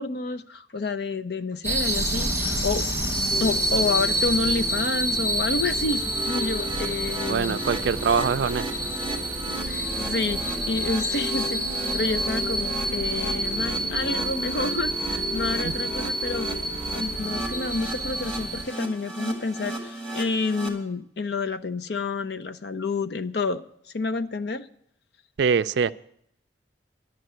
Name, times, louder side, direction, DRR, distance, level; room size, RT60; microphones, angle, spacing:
voice 1, 0.0-2.9 3.4-7.6 9.6-11.6 11.9-16.5 16.9-23.6 23.9-24.7, left 3 dB, 60° left, 0.6 m, -29 dB
sound 1, 1.6-18.6, right 1 dB, 10° right, 1.3 m, -28 dB
sound 2, 3.3-17.6, left 2 dB, 25° left, 2.8 m, -39 dB
sound 3, 5.9-20.7, right 2 dB, 5° left, 1.9 m, -36 dB
voice 2, 7.3-8.9 15.6-15.7 25.4-25.9, right 6 dB, 70° right, 0.4 m, -24 dB
11.0 x 6.7 x 9.2 m
head